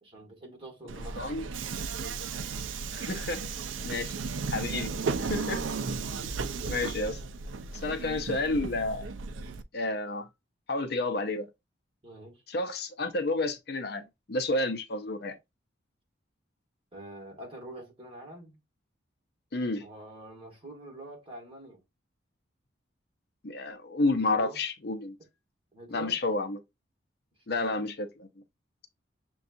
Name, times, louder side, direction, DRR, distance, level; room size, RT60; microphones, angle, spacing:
voice 1, 0.0-1.3 12.0-12.4 16.9-18.6 19.8-21.8 24.1-24.6 25.7-26.2 27.5-27.8, right 1 dB, 30° right, 1.7 m, -46 dB
Subway metro underground, 0.9-9.6, right 4 dB, 80° right, 0.4 m, -35 dB
voice 2, 1.2-1.5 2.9-3.4 3.8-4.1 4.5-4.9 5.2-5.6 6.7-7.2 7.7-9.1 9.7-10.3 10.7-11.5 12.5-14.0 14.3-15.4 19.5-19.8 23.4-25.2 25.9-26.6 27.5-28.3, left 2 dB, 55° left, 0.6 m, -30 dB
6.8 x 2.3 x 2.5 m
head